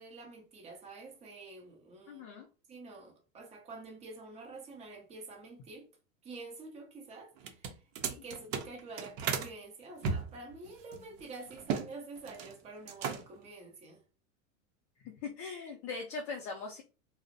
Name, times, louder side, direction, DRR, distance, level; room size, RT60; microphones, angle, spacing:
voice 1, 0.0-2.3 2.7-5.9 6.2-14.0, right 3 dB, 15° right, 0.4 m, -48 dB
voice 2, 2.1-2.5 15.0-16.8, left 4 dB, 40° left, 0.4 m, -40 dB
sound 1, 7.4-9.5 10.0-11.9 12.2-12.5 12.8-13.5, right 6 dB, 65° right, 0.6 m, -36 dB
2.4 x 2.0 x 2.5 m
supercardioid pair, 125°, 42 cm